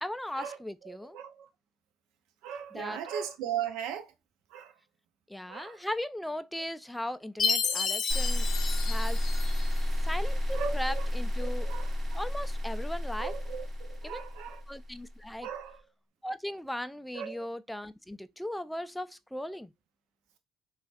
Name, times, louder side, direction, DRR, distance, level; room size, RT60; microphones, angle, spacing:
voice 1, 0.0-1.2 2.7-3.0 5.3-8.5 8.8-9.2 10.0-11.7 12.1-13.3 14.0-14.2 14.7-15.5 16.2-19.7, left 1 dB, 5° left, 0.3 m, -37 dB
voice 2, 0.8-1.5 2.4-4.1 4.5-4.7 5.5-5.8 7.6-7.8 10.5-11.1 11.4-12.2 13.2-14.6 15.4-15.8 17.1-17.4, right 8 dB, 70° right, 0.7 m, -38 dB
Chime, 7.4-9.8, left 5 dB, 45° left, 0.6 m, -31 dB
sound 1, 8.1-15.2, left 1 dB, 30° right, 1.3 m, -31 dB
3.8 x 2.4 x 2.5 m
hypercardioid pair, 65°, 0 cm